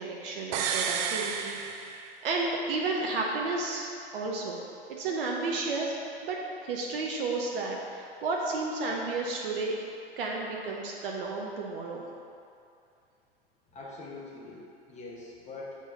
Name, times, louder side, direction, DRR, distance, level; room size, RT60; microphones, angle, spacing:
voice 1, 0.0-1.9 2.2-4.6 4.9-6.0 6.2-6.4 6.6-9.7 10.2-12.0, right 3 dB, 60° right, -1 dB, 0.8 m, -32 dB
sound 1, 0.5-2.4 2.7-2.8, right 7 dB, 40° right, 0.4 m, -32 dB
voice 2, 13.7-15.8, left 3 dB, 20° left, -5 dB, 1.5 m, -43 dB
7.6 x 3.9 x 3.9 m, 2.5 s
figure-of-eight pair, 85°, 32 cm